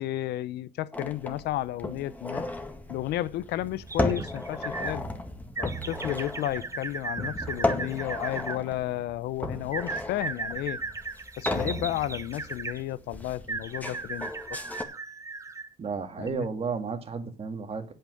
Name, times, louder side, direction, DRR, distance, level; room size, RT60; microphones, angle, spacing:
voice 1, 0.0-2.4 2.9-5.0 5.6-10.8 11.4-14.6 16.2-16.5, left 14 dB, 75° left, 0.7 m, -32 dB
sound 1, 0.9-14.8, left 1 dB, 10° left, 1.8 m, -35 dB
sound 2, 3.9-5.0 5.5-8.6 9.7-12.8 13.5-15.7 16.2-16.3, right 4 dB, 20° right, 0.9 m, -36 dB
voice 2, 15.8-17.8, right 5 dB, 35° right, 2.0 m, -32 dB
8.7 x 8.1 x 7.7 m
cardioid pair, 110°, 17 cm